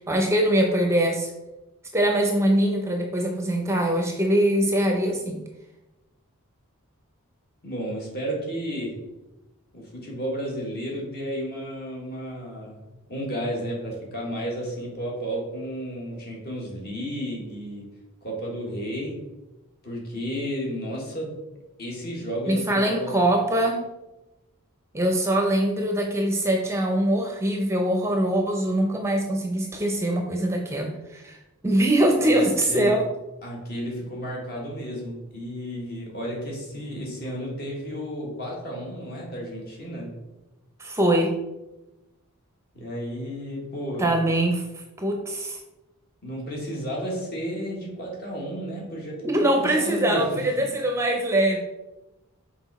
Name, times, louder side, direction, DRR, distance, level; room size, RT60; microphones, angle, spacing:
voice 1, 0.0-1.3 1.9-5.4 22.5-23.8 24.9-31.4 31.6-33.0 40.8-41.3 44.0-44.6 45.0-45.6 49.2-51.6, right 1 dB, 10° right, 2 dB, 0.6 m, -23 dB
voice 2, 7.6-9.1 9.7-12.8 13.1-17.9 18.2-19.2 19.8-21.4 21.8-23.2 32.2-32.4 32.7-33.0 33.4-40.2 42.7-44.1 46.2-50.8, equal, 45° left, -2 dB, 1.8 m, -32 dB
6.0 x 4.5 x 4.1 m, 1.0 s
head